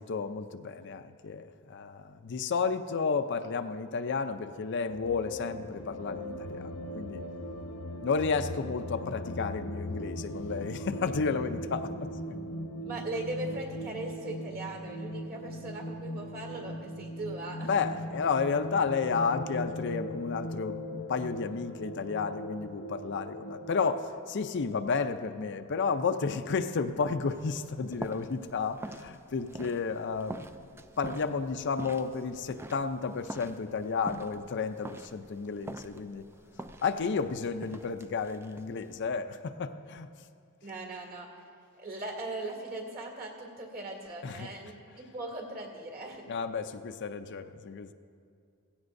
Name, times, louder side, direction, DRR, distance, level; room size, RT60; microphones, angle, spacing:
voice 1, 0.0-7.2 8.0-12.4 17.6-36.3 36.8-40.1 44.2-44.5 46.3-47.9, left 5 dB, 55° left, 9 dB, 0.5 m, -32 dB
sound 1, 4.9-24.1, equal, 85° left, 0.8 m, -39 dB
voice 2, 12.9-17.7 40.6-41.4 41.8-46.3, right 2 dB, 45° right, 1 dB, 2.2 m, -39 dB
sound 2, 26.8-39.1, right 1 dB, 10° right, 0.3 m, -46 dB
17.0 x 16.0 x 2.6 m, 2.4 s
head